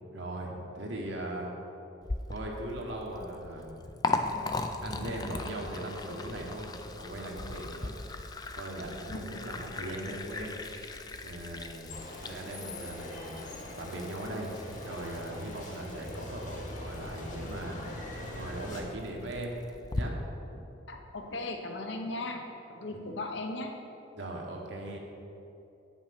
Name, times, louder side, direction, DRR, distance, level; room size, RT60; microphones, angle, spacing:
voice 1, 0.1-1.5 2.3-3.9 4.8-7.9 8.6-13.4 13.8-14.5 14.8-19.5 19.9-20.2 20.4-20.6 22.9-23.0 24.1-25.0, right 1 dB, 65° right, -1 dB, 1.3 m, -39 dB
Liquid, 2.0-20.0, left 3 dB, 20° left, 0.4 m, -39 dB
sound 1, 11.9-18.8, left 1 dB, 40° left, 1.2 m, -42 dB
voice 2, 20.9-22.5 22.7-23.8, left 2 dB, 65° left, 4 dB, 0.9 m, -37 dB
8.7 x 5.8 x 5.9 m, 2.9 s
head